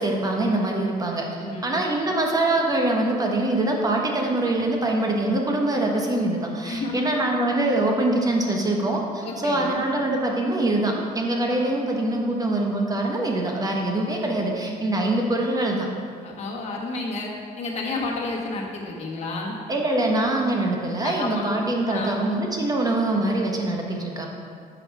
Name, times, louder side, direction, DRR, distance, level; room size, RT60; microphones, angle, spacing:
voice 1, 0.0-1.2 1.6-15.9 19.7-24.3, right 2 dB, 20° right, 1 dB, 1.1 m, -24 dB
voice 2, 1.4-1.8 6.6-7.0 9.2-9.8 16.2-17.3 17.6-19.6 21.0-21.4 21.9-22.2, left 3 dB, 40° left, -2 dB, 1.4 m, -31 dB
7.1 x 5.0 x 4.7 m, 2.3 s
cardioid pair, 110°, 17 cm